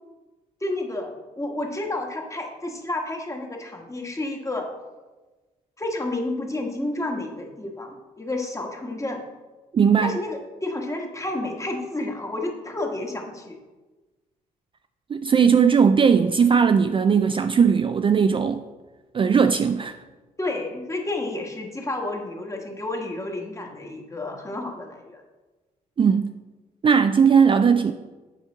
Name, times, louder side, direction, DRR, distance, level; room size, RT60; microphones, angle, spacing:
voice 1, 0.6-4.7 5.8-9.2 10.0-13.6 20.4-25.2, left 2 dB, 20° left, 1.3 m, -30 dB
voice 2, 9.7-10.2 15.1-18.6 19.1-20.0 26.0-26.3 26.8-27.9, right 6 dB, 35° right, 0.3 m, -18 dB
7.4 x 4.4 x 3.9 m
supercardioid pair, 60°, 16 cm